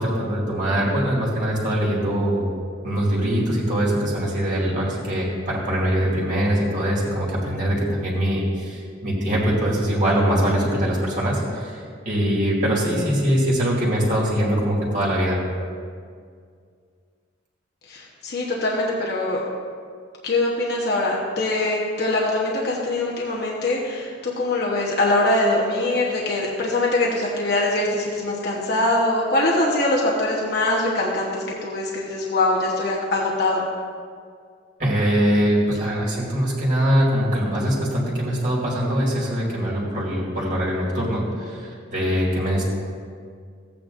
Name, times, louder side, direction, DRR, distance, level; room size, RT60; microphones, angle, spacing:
voice 1, 0.0-2.5 2.8-15.4 34.8-42.6, equal, 40° right, -5 dB, 2.1 m, -22 dB
voice 2, 17.9-19.4 20.2-33.6, left 2 dB, 55° left, -4 dB, 1.1 m, -23 dB
15.0 x 8.7 x 2.6 m, 2.1 s
head